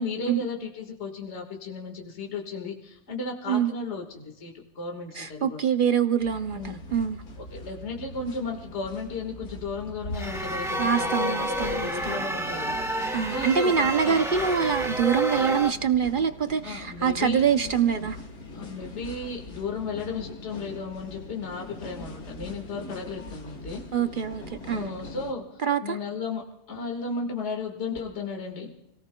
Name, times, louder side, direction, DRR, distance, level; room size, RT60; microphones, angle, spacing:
voice 1, 0.0-5.6 6.5-6.8 7.4-14.2 16.6-17.4 18.5-24.1 24.7-28.7, left 4 dB, 45° left, 1 dB, 1.9 m, -35 dB
voice 2, 5.2-7.2 10.8-12.2 13.1-18.2 23.9-24.9 25.6-26.0, right 7 dB, 65° right, 9 dB, 0.5 m, -25 dB
sound 1, 6.2-25.3, left 1 dB, 75° left, 2.4 m, -42 dB
sound 2, 10.1-15.7, right 1 dB, ahead, 1.1 m, -29 dB
29.5 x 18.5 x 2.2 m, 0.95 s
omnidirectional pair, 1.6 m